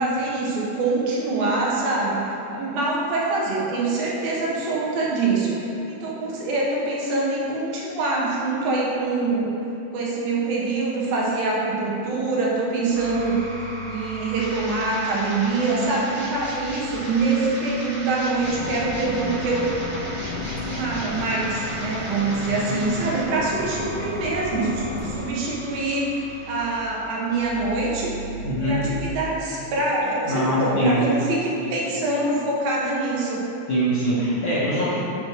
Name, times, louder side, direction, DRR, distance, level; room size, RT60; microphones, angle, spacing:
voice 1, 0.0-9.5 9.9-13.4 13.9-19.7 20.7-33.4, right 3 dB, 85° right, -5 dB, 3.2 m, -25 dB
sound 1, 12.9-29.0, right 1 dB, 35° right, 0.8 m, -36 dB
sound 2, 18.4-25.2, left 2 dB, 85° left, 1.2 m, -33 dB
voice 2, 28.4-28.8 30.2-31.0 33.7-34.9, equal, 50° left, -10 dB, 1.7 m, -23 dB
11.5 x 6.5 x 3.2 m, 2.9 s
omnidirectional pair, 4.0 m